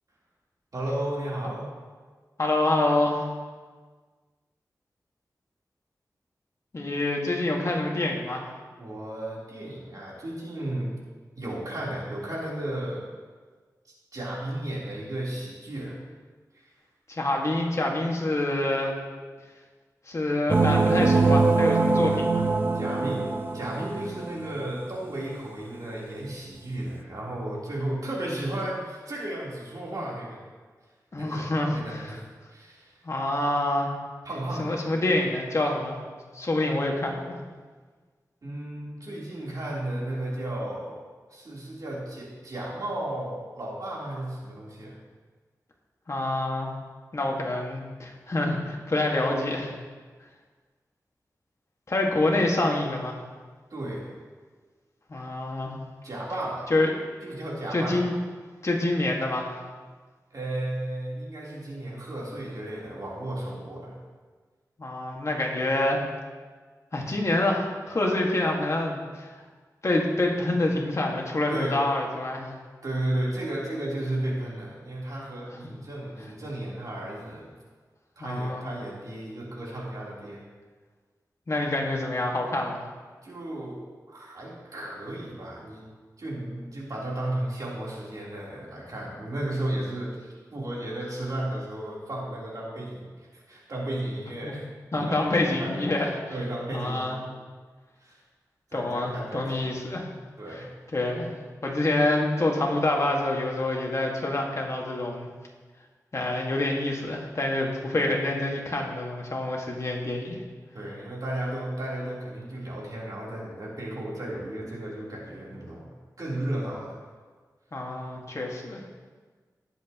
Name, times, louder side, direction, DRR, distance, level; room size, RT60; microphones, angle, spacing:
voice 1, 0.7-1.7 8.8-10.9 11.4-13.1 14.1-16.0 16.5-16.7 22.7-30.4 31.2-33.0 34.2-34.8 38.4-41.0 41.3-45.0 53.7-54.1 56.0-56.7 57.2-58.1 60.3-64.0 71.5-71.8 72.8-77.5 78.2-80.4 83.2-85.8 86.2-95.8 96.3-97.2 98.0-98.2 98.7-99.8 100.4-100.7 110.7-117.0, right 1 dB, 60° right, -5 dB, 3.5 m, -34 dB
voice 2, 2.4-3.2 6.7-8.5 17.1-18.9 20.1-22.4 31.1-32.0 33.0-33.9 34.6-36.0 36.3-37.4 46.1-46.7 47.1-49.7 51.9-53.2 55.1-55.8 56.7-56.9 57.7-58.2 58.6-59.6 64.8-66.0 66.9-69.3 69.8-72.5 78.2-78.7 81.5-82.8 94.4-94.5 94.9-96.3 96.7-97.2 98.7-100.1 100.5-100.6 100.9-101.3 101.6-105.3 106.1-110.4 117.7-118.8, left 2 dB, 45° left, 0 dB, 1.8 m, -26 dB
sound 1, 20.5-24.5, right 3 dB, 30° right, 0.6 m, -23 dB
19.0 x 8.1 x 3.0 m, 1.4 s
wide cardioid pair, 105°, 7 cm